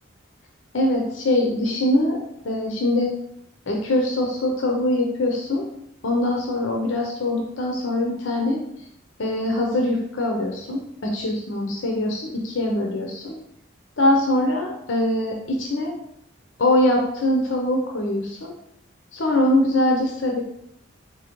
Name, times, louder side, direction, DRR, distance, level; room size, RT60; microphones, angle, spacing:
voice 1, 0.7-2.2 2.4-3.1 3.7-5.6 6.0-8.6 9.2-13.4 14.0-15.9 16.6-18.5 19.1-20.4, left 1 dB, 70° left, 0 dB, 0.6 m, -22 dB
4.3 x 3.7 x 3.0 m, 0.77 s
head